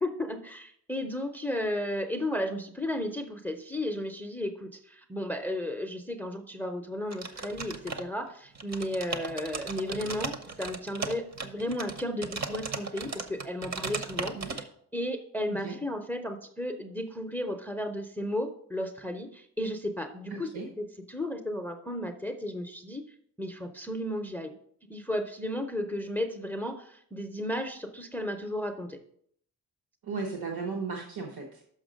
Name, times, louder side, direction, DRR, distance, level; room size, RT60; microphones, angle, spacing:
voice 1, 0.0-20.5 20.8-23.0 23.4-24.5 24.9-29.0, left 1 dB, 5° left, 6 dB, 0.5 m, -34 dB
sound 1, 7.1-8.3 8.6-14.6, right 4 dB, 45° right, 0.8 m, -36 dB
voice 2, 20.3-20.7 30.0-31.6, right 4 dB, 70° right, 2 dB, 1.1 m, -35 dB
6.3 x 5.7 x 5.0 m, 0.64 s
wide cardioid pair, 165°, 39 cm